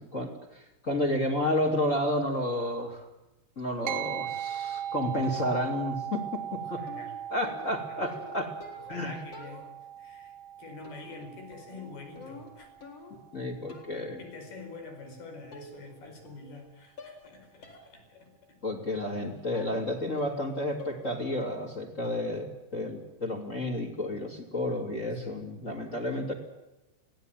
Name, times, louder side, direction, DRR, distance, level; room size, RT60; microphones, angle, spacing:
voice 1, 0.0-3.1 3.6-6.4 6.7-6.8 7.3-8.5 8.9-9.2 13.3-14.2 18.6-26.3, left 1 dB, 20° left, 4 dB, 2.7 m, -31 dB
sound 1, 3.9-13.6, right 10 dB, 65° right, 2.3 m, -39 dB
sound 2, 5.2-5.8 6.9-9.0 9.3-10.0 10.8-11.3 11.5-13.3 13.7-14.1 15.0-15.1 15.5-16.0 16.3-16.7 17.0-17.3 17.6-17.9 18.3-18.4 19.5-19.8 20.2-20.5 20.8-21.1 21.4-21.8 22.0-22.4, left 3 dB, 40° left, 4.9 m, -49 dB
voice 2, 6.5-7.2 7.7-8.1 8.7-9.7 10.0-12.7 14.2-18.6 25.1-25.4, left 3 dB, 75° left, 4 dB, 6.7 m, -47 dB
23.5 x 17.5 x 9.2 m, 1.0 s
omnidirectional pair, 4.5 m